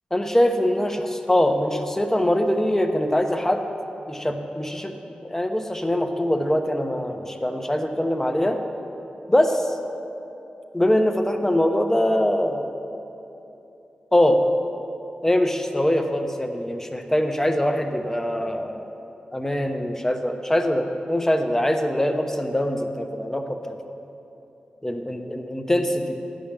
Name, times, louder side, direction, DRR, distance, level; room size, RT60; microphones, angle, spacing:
voice 1, 0.1-3.7 4.1-4.9 5.2-8.6 9.3-9.8 10.7-12.7 14.1-14.4 15.2-19.0 19.3-23.8 24.8-26.2, left 1 dB, 15° left, 5 dB, 0.9 m, -23 dB
10.0 x 5.1 x 7.4 m, 2.9 s
cardioid pair, 50°, 3 cm